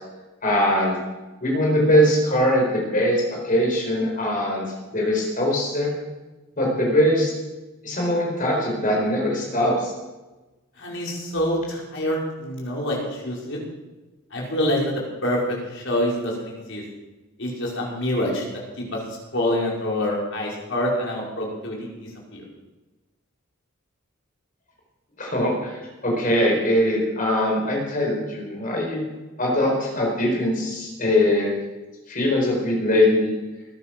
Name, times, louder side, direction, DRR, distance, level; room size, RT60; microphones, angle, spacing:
voice 1, 0.4-1.0 1.4-4.7 4.9-6.0 6.6-7.3 7.8-9.9 25.2-29.0 29.4-31.5 32.1-33.3, left 1 dB, 40° left, -1 dB, 4.6 m, -21 dB
voice 2, 10.8-13.6 14.3-14.8 15.2-15.4 15.7-16.8 17.4-18.4 18.8-22.4, left 1 dB, 55° left, -3 dB, 5.3 m, -26 dB
20.0 x 10.5 x 6.1 m, 1.1 s
head